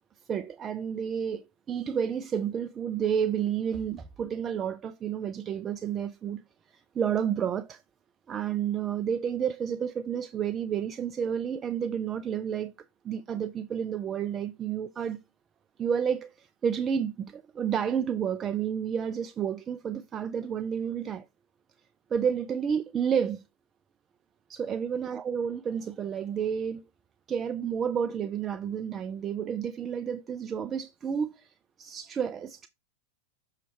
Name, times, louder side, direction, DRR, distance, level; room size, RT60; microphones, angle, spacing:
voice 1, 0.3-6.4 6.7-7.8 8.3-12.7 13.0-15.2 15.8-21.2 22.1-23.4 24.5-26.8 27.3-32.7, right 8 dB, 25° right, 0.4 m, -30 dB
6.2 x 5.6 x 3.2 m
figure-of-eight pair, 90°, 0 cm